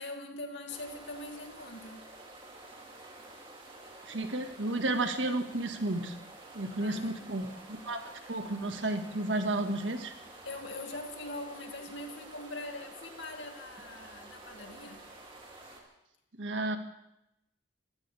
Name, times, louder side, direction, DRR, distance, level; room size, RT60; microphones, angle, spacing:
voice 1, 0.0-2.1 6.8-7.2 10.4-15.0, left 2 dB, 70° left, 3 dB, 2.5 m, -42 dB
sound 1, 0.7-15.8, right 2 dB, 30° right, 2.9 m, -50 dB
voice 2, 4.1-6.1 6.5-10.1 16.4-16.8, right 2 dB, 80° right, 6 dB, 1.7 m, -32 dB
25.0 x 15.5 x 3.5 m, 0.86 s
head